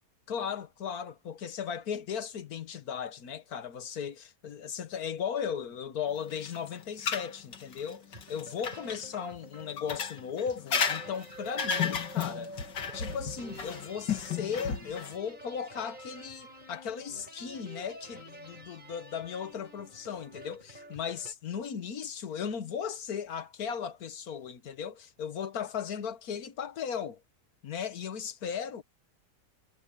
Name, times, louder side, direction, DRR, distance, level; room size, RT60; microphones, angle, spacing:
voice 1, 0.3-12.5 12.9-27.2 27.6-28.8, left 7 dB, 60° left, 1.6 m, -37 dB
sound 1, 6.3-9.0 9.8-15.1, left 7 dB, 90° left, 2.5 m, -33 dB
sound 2, 8.0-21.3, right 1 dB, 25° right, 7.1 m, -48 dB
omnidirectional pair, 1.8 m